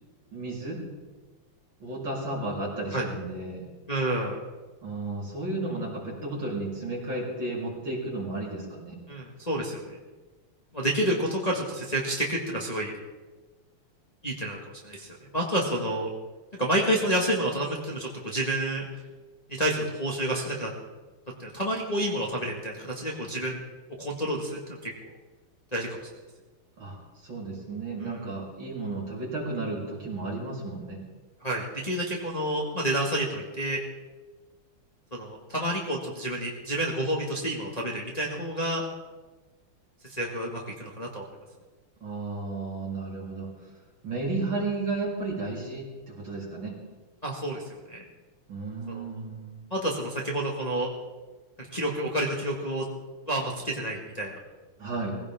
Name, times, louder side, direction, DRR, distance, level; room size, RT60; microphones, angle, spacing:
voice 1, 0.3-0.8 1.8-3.7 4.8-9.0 26.8-31.0 42.0-43.5 44.0-46.8 48.5-49.6 54.8-55.1, right 2 dB, 60° right, -4 dB, 4.6 m, -33 dB
voice 2, 3.9-4.4 9.1-10.0 10.7-12.9 14.2-14.6 14.8-16.1 16.6-18.9 19.5-20.7 21.4-23.6 24.0-24.9 25.7-25.9 28.0-28.3 31.4-33.8 35.1-38.8 40.1-41.3 47.2-47.6 47.9-48.0 48.9-49.2 49.7-50.9 51.6-52.8 53.3-54.4, right 1 dB, 20° left, -3 dB, 1.9 m, -29 dB
20.5 x 16.5 x 3.7 m, 1.3 s
omnidirectional pair, 2.4 m